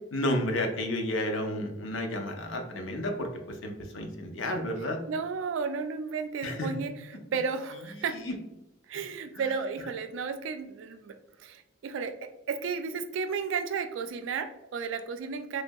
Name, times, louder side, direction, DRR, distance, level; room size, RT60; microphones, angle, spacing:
voice 1, 0.1-3.3 3.6-5.0 6.4-6.7 8.2-8.3, left 1 dB, 80° left, 3 dB, 0.5 m, -31 dB
voice 2, 5.1-8.2 8.9-15.6, right 5 dB, 75° right, 9 dB, 0.3 m, -33 dB
3.2 x 2.6 x 2.2 m, 0.95 s
head